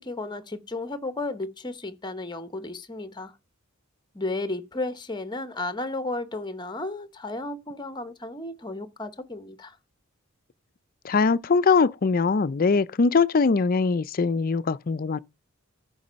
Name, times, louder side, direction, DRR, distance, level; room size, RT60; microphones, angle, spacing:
voice 1, 0.0-3.3 4.1-9.8, left 2 dB, 20° left, 0.9 m, -33 dB
voice 2, 11.0-15.2, left 4 dB, 45° left, 0.5 m, -22 dB
13.5 x 5.3 x 5.1 m
head